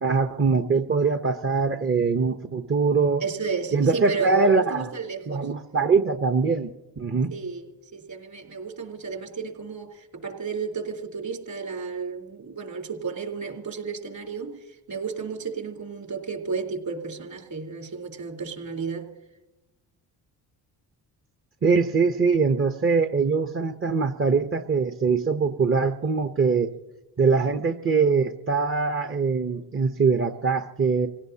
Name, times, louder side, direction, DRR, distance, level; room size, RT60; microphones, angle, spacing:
voice 1, 0.0-3.2 3.7-4.9 5.3-6.7 7.0-7.3 21.6-26.7 27.2-31.1, right 4 dB, 30° right, 7 dB, 0.9 m, -22 dB
voice 2, 3.2-5.5 7.3-19.1, right 5 dB, 55° right, 3 dB, 3.8 m, -33 dB
28.0 x 17.5 x 2.8 m, 1.0 s
supercardioid pair, 60°, 43 cm